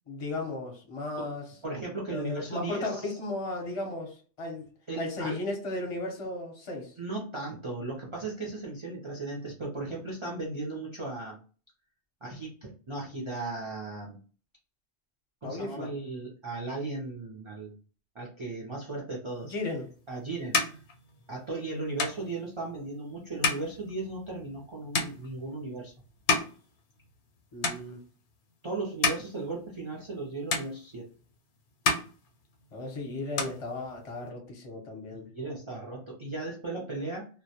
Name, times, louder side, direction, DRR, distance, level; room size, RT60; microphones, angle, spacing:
voice 1, 0.1-1.5 2.1-4.7 5.0-6.9 15.4-15.9 19.5-19.9 27.5-28.0 32.7-35.3, left 2 dB, 35° left, 0.6 m, -35 dB
voice 2, 1.6-3.2 4.9-5.4 7.0-11.4 12.2-14.2 15.4-17.7 18.1-19.5 20.1-20.8 21.3-25.9 28.6-31.1 35.3-37.3, right 2 dB, 45° right, 0.4 m, -36 dB
sound 1, 19.7-27.3 27.6-28.3 28.7-30.2 30.5-31.4 31.7-32.9 33.2-34.3, left 4 dB, 65° left, 0.8 m, -32 dB
2.2 x 2.1 x 2.7 m
omnidirectional pair, 1.3 m